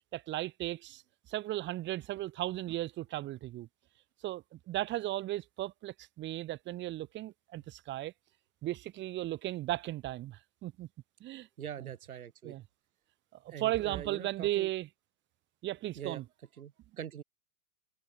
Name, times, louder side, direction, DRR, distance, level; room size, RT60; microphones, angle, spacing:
voice 1, 0.1-1.0 1.3-3.7 4.2-8.1 8.6-10.9 11.2-11.5 11.8-11.9 12.4-12.6 13.4-14.9 15.6-16.2, right 15 dB, 25° right, 2.1 m, -36 dB
voice 2, 11.6-12.6 13.5-14.7 15.9-16.2 16.6-17.2, right 9 dB, 70° right, 6.3 m, -43 dB
hypercardioid pair, 125°, 45 cm